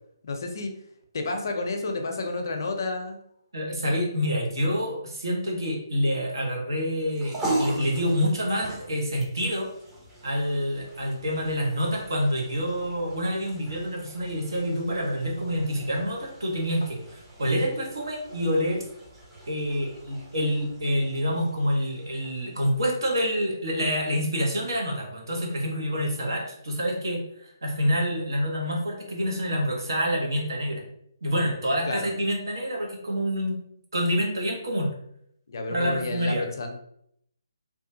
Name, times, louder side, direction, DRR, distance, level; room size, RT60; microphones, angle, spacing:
voice 1, 0.2-0.7 1.1-3.2 31.9-32.1 35.5-36.7, left 3 dB, 60° left, 4 dB, 0.5 m, -30 dB
voice 2, 3.5-9.7 10.2-17.0 17.4-18.8 19.5-30.8 31.2-33.6 33.9-34.9 35.7-36.4, equal, 70° right, 0 dB, 1.0 m, -27 dB
sound 1, 6.9-23.4, right 1 dB, 10° right, 0.6 m, -39 dB
2.9 x 2.3 x 2.7 m, 0.72 s
figure-of-eight pair, 145°, 2 cm